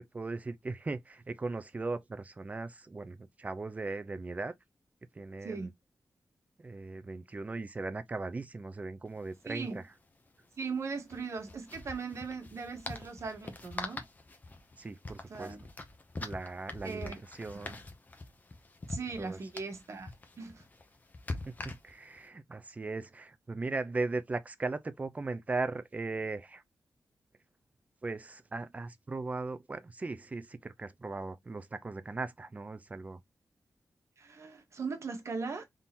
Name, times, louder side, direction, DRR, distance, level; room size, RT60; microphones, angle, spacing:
voice 1, 0.1-4.5 5.1-5.7 6.6-9.8 14.8-15.5 16.2-17.8 19.2-19.4 21.5-26.6 28.0-33.2, right 3 dB, 25° right, 0.5 m, -38 dB
sound 1, 9.1-9.2 9.4-9.5 11.0-22.2, left 2 dB, 30° left, 0.9 m, -44 dB
voice 2, 9.4-9.8 10.6-14.0 15.3-15.6 16.8-17.2 18.9-20.1 20.4-20.6 34.2-35.6, right 4 dB, 60° right, 1.3 m, -39 dB
3.7 x 2.9 x 4.1 m
wide cardioid pair, 125°, 6 cm